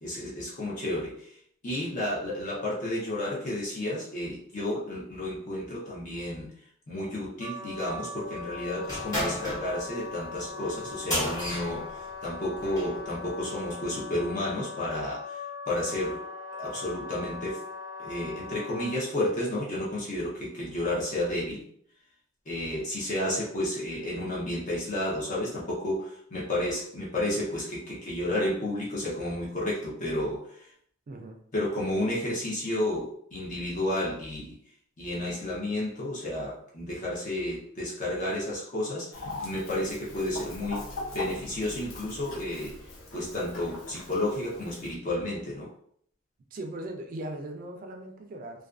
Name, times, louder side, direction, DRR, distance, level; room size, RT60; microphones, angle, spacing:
voice 1, 0.0-1.4 1.6-6.5 6.9-15.4 15.7-16.2 16.6-17.6 18.0-21.6 22.5-30.7 31.5-34.6 35.0-40.8 41.1-42.8 43.1-45.7, left 1 dB, 40° left, -5 dB, 0.6 m, -31 dB
Wind instrument woodwind instrument, 7.4-19.0, left 4 dB, 60° left, 1.1 m, -40 dB
sound 1, 8.8-13.0, left 1 dB, 20° left, 0.9 m, -34 dB
voice 2, 31.1-31.4 46.5-48.7, right 1 dB, 45° right, 4 dB, 0.3 m, -39 dB
Chicken rooster, 39.1-44.9, left 2 dB, 85° left, 0.5 m, -41 dB
2.4 x 2.2 x 2.4 m, 0.65 s
head